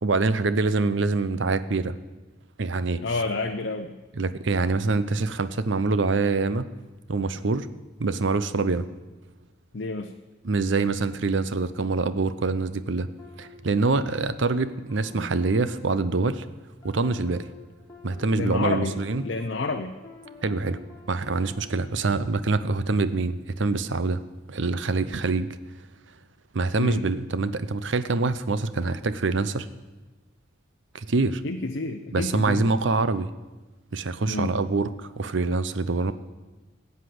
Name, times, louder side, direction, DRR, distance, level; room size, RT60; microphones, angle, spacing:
voice 1, 0.0-2.0 2.6-3.0 4.2-6.7 7.1-7.7 8.0-8.9 10.4-13.1 13.4-16.5 16.8-17.5 18.0-19.2 20.4-20.8 21.1-24.2 24.5-25.6 26.5-29.7 30.9-31.4 32.1-33.3 33.9-36.1, right 3 dB, 70° right, 14 dB, 0.7 m, -25 dB
voice 2, 3.0-4.0 9.7-10.1 18.4-19.0 19.2-19.9 26.8-27.0 31.4-32.7 34.3-34.6, left 3 dB, 60° left, 4 dB, 0.6 m, -29 dB
sound 1, 13.2-14.4 14.9-21.5, left 1 dB, 15° left, 2.4 m, -47 dB
15.0 x 8.3 x 7.7 m, 1.2 s
head